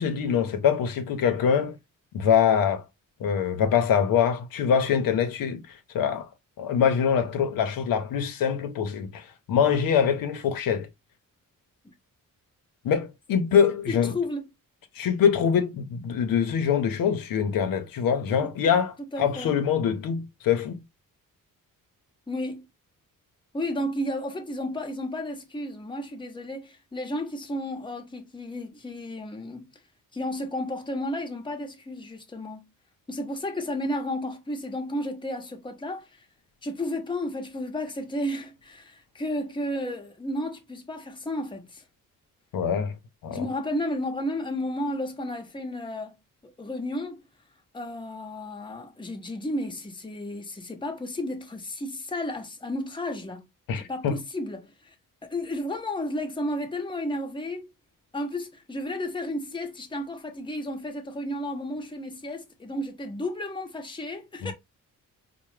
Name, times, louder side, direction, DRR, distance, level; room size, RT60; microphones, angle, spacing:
voice 1, 0.0-1.8 2.1-2.8 3.2-6.3 6.6-10.9 12.8-14.1 15.0-20.8 42.5-43.0 43.2-43.5 53.7-54.2 64.4-64.5, left 7 dB, 80° left, 0.7 m, -24 dB
voice 2, 13.9-14.5 18.3-18.5 19.1-19.7 22.3-22.7 23.5-29.7 30.1-32.6 33.1-36.1 36.6-41.8 43.3-46.1 46.6-47.2 47.7-53.5 53.8-54.9 55.2-57.7 58.1-64.5, left 1 dB, 15° left, 0.9 m, -32 dB
4.5 x 2.1 x 3.1 m
cardioid pair, 115°, 34 cm